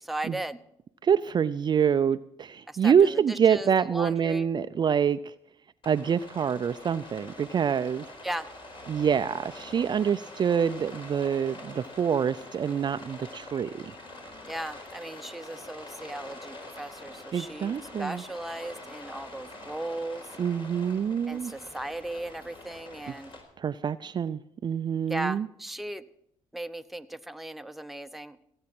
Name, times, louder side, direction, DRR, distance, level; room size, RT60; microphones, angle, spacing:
voice 1, 0.0-0.6 2.7-4.5 8.2-8.5 14.5-20.3 21.3-23.3 25.1-26.0 26.5-28.4, right 1 dB, ahead, 9 dB, 0.8 m, -37 dB
voice 2, 1.0-5.3 5.9-8.0 8.9-13.9 17.3-18.2 20.4-21.5 23.6-25.5, right 7 dB, 40° right, 12 dB, 0.4 m, -26 dB
Rain, 5.8-23.4, left 2 dB, 45° left, 4.4 m, -45 dB
17.0 x 8.8 x 6.0 m, 0.75 s
supercardioid pair, 75°, 12 cm